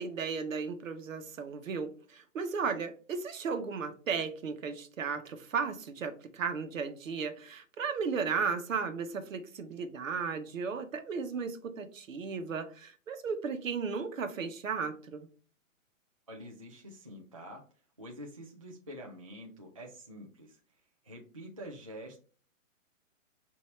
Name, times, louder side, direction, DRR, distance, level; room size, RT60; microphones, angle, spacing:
voice 1, 0.0-15.3, right 5 dB, 75° right, 7 dB, 1.0 m, -35 dB
voice 2, 16.3-17.6 18.0-20.6 21.0-22.2, equal, 30° right, -1 dB, 0.4 m, -46 dB
5.6 x 2.7 x 3.1 m, 0.39 s
hypercardioid pair, 170°, 40 cm